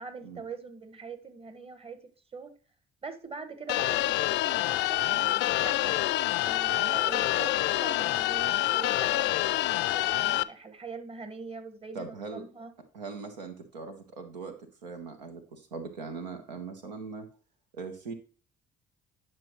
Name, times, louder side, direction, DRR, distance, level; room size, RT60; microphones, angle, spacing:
voice 1, 0.0-2.5 3.0-6.0 6.5-12.7, right 4 dB, 30° right, 9 dB, 1.5 m, -43 dB
sound 1, 3.7-10.4, left 16 dB, 60° left, 0.4 m, -27 dB
voice 2, 11.9-12.4 12.9-17.3 17.7-18.1, right 4 dB, 90° right, 5 dB, 0.9 m, -40 dB
10.5 x 6.1 x 3.1 m, 0.39 s
hypercardioid pair, 50°, 21 cm